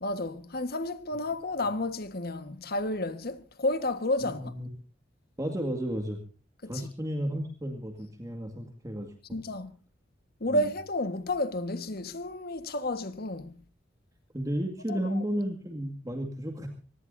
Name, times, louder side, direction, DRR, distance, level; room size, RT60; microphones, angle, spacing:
voice 1, 0.0-4.5 6.6-6.7 9.3-9.7 10.4-13.6 14.9-15.1, left 1 dB, 55° left, 1.5 m, -31 dB
voice 2, 4.2-4.7 5.4-6.2 6.7-9.4 10.5-10.7 14.3-16.7, equal, 20° right, 2.1 m, -33 dB
24.0 x 19.0 x 2.7 m
head